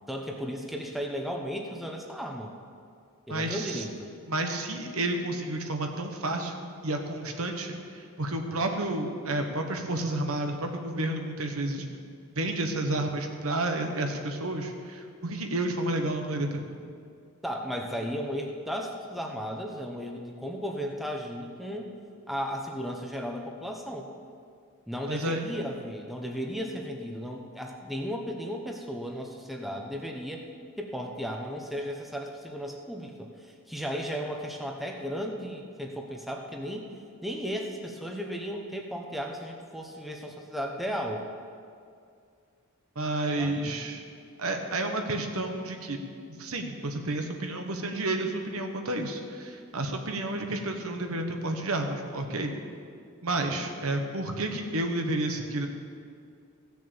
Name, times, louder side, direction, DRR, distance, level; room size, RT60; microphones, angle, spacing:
voice 1, 0.1-2.5 3.3-4.1 17.4-21.9 22.3-24.1 24.9-30.4 30.8-36.9 37.2-41.2 43.4-43.6, equal, ahead, 1 dB, 0.9 m, -35 dB
voice 2, 3.3-3.8 4.3-11.9 12.3-16.6 25.1-25.4 42.9-44.0 44.4-46.0 46.3-52.5 53.2-55.7, right 2 dB, 75° right, 4 dB, 1.3 m, -31 dB
16.0 x 6.7 x 7.1 m, 2.3 s
head